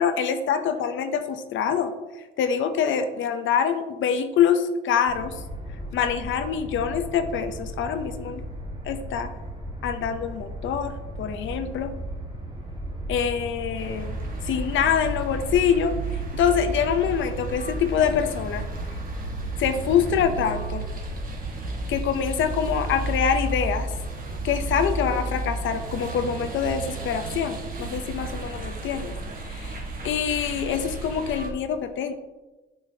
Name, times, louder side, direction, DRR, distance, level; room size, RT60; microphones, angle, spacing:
voice 1, 0.0-1.9 2.4-5.4 5.9-8.4 8.9-9.3 9.8-11.9 13.1-14.1 14.4-16.0 16.3-18.6 19.6-20.9 21.9-23.9 24.4-29.1 29.4-29.8 30.0-32.1, left 7 dB, 75° left, 8 dB, 0.6 m, -25 dB
sound 1, 5.1-23.2, right 1 dB, 25° right, 1.8 m, -37 dB
sound 2, 13.8-31.5, right 2 dB, 45° right, 1.4 m, -32 dB
7.0 x 6.9 x 2.8 m, 1.1 s
cardioid pair, 90°, 20 cm